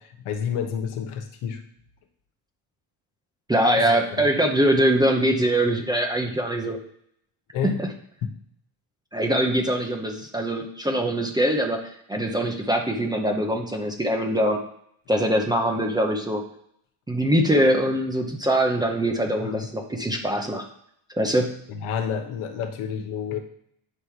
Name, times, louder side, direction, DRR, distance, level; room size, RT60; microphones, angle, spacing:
voice 1, 0.0-1.6 3.8-3.9 4.2-4.3 7.5-7.8 8.2-8.3 19.4-19.7 21.7-23.4, left 7 dB, 85° left, 6 dB, 1.2 m, -29 dB
voice 2, 3.5-6.8 7.6-7.9 9.1-14.6 15.1-16.4 17.1-20.7 21.2-21.5, right 1 dB, 10° right, 2 dB, 0.5 m, -23 dB
8.7 x 3.2 x 5.6 m, 0.69 s
cardioid pair, 170°, 48 cm